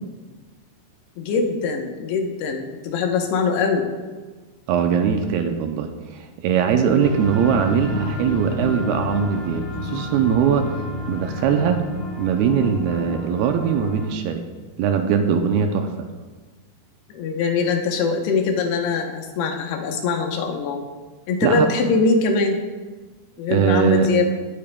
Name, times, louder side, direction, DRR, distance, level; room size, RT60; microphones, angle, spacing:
voice 1, 1.2-3.9 17.1-20.8 21.3-22.6 23.4-24.3, left 4 dB, 85° left, 3 dB, 3.0 m, -22 dB
voice 2, 4.7-10.7 11.1-11.8 12.2-14.4 14.8-16.1 21.4-21.7 23.5-24.1, right 7 dB, 80° right, 5 dB, 2.4 m, -21 dB
sound 1, 7.0-14.1, left 2 dB, 55° left, 0.8 m, -30 dB
17.5 x 8.5 x 2.3 m, 1.3 s
omnidirectional pair, 4.6 m